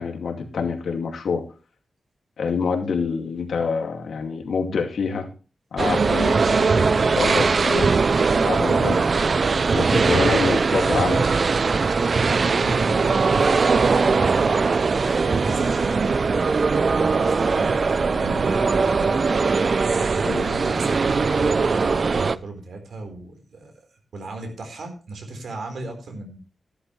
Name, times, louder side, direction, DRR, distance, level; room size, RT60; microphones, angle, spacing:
voice 1, 0.0-1.4 2.4-5.3 5.7-7.9 8.4-9.0 9.7-11.3 20.2-20.4, left 5 dB, 90° left, 4 dB, 2.4 m, -26 dB
sound 1, 5.8-22.4, right 4 dB, 45° right, 0.5 m, -20 dB
voice 2, 12.5-14.7 15.0-19.2 20.4-26.4, right 2 dB, 75° right, 4 dB, 4.2 m, -36 dB
14.5 x 11.5 x 3.3 m, 0.35 s
wide cardioid pair, 140°, 0 cm